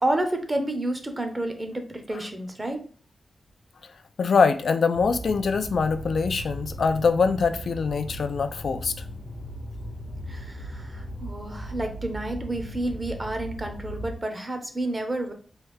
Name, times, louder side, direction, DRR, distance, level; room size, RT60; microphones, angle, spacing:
voice 1, 0.0-2.8 10.3-15.3, right 1 dB, 25° right, 5 dB, 0.6 m, -30 dB
voice 2, 4.2-8.9, left 5 dB, 70° left, 10 dB, 0.3 m, -23 dB
sound 1, 4.9-14.1, equal, 50° left, 0.7 m, -37 dB
3.2 x 2.3 x 3.2 m, 0.42 s
wide cardioid pair, 90°, 0 cm